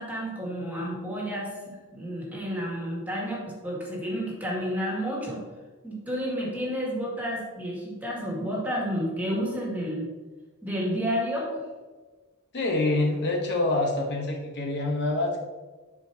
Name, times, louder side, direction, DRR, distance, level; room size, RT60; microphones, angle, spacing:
voice 1, 0.0-1.5 1.9-5.4 5.8-10.1 10.6-11.6, equal, 10° right, -4 dB, 2.0 m, -30 dB
voice 2, 12.5-15.4, left 2 dB, 50° left, 0 dB, 1.0 m, -26 dB
10.5 x 4.8 x 2.8 m, 1.3 s
head